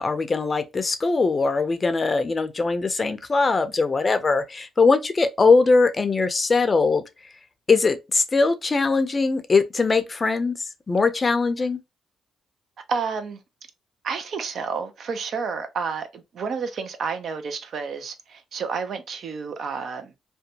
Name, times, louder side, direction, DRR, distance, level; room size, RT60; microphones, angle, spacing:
voice 1, 0.0-7.0 7.7-10.5 10.9-11.8, left 4 dB, 30° left, 0.5 m, -21 dB
voice 2, 12.9-13.4 14.0-20.1, right 5 dB, 60° right, 0.5 m, -30 dB
2.6 x 2.2 x 2.7 m
cardioid pair, 90°, 0 cm